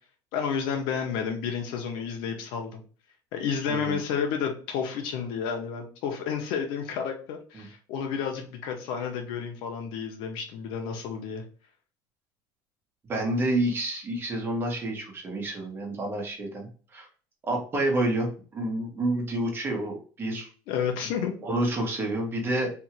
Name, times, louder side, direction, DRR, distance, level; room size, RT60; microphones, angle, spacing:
voice 1, 0.3-2.8 3.3-11.4 20.7-21.3, left 7 dB, 80° left, 4 dB, 1.1 m, -31 dB
voice 2, 13.1-17.1 17.4-20.5 21.4-22.7, right 1 dB, 25° right, 1 dB, 1.5 m, -29 dB
3.6 x 2.7 x 4.5 m, 0.39 s
cardioid pair, 135°, 8 cm